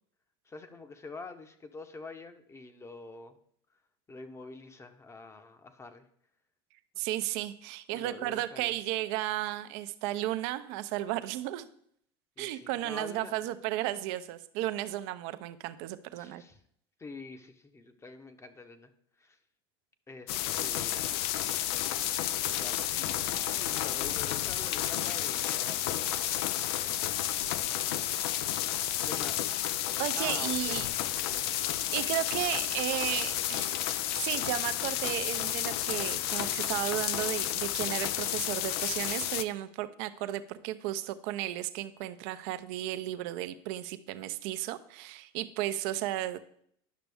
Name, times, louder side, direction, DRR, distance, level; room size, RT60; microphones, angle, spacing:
voice 1, 0.5-3.4 4.1-6.1 7.9-8.7 12.4-13.4 16.1-16.6 17.0-18.9 19.2-19.4 20.1-21.3 22.5-26.5 29.0-29.6 30.2-30.8 31.1-31.5, left 3 dB, 20° left, 9 dB, 0.9 m, -47 dB
voice 2, 7.0-11.7 12.4-16.4 30.0-30.9 31.9-33.7 34.2-46.4, right 14 dB, 65° right, 12 dB, 0.6 m, -34 dB
sound 1, 20.3-39.4, left 12 dB, 70° left, 0.5 m, -31 dB
10.0 x 6.0 x 3.4 m, 0.67 s
hypercardioid pair, 95°, 13 cm